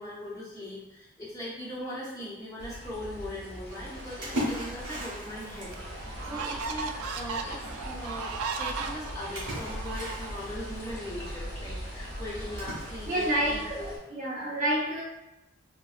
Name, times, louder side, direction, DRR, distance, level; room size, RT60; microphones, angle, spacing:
voice 1, 0.0-13.9, left 1 dB, 15° left, -8 dB, 0.9 m, -40 dB
sound 1, 2.6-14.0, equal, 80° left, 1.1 m, -41 dB
Splash splatter, 3.7-13.7, equal, 55° right, 1.4 m, -40 dB
sound 2, 5.7-10.7, right 5 dB, 80° right, 0.3 m, -36 dB
voice 2, 13.1-15.0, right 1 dB, 35° right, -6 dB, 0.8 m, -29 dB
4.0 x 2.1 x 2.5 m, 0.98 s
head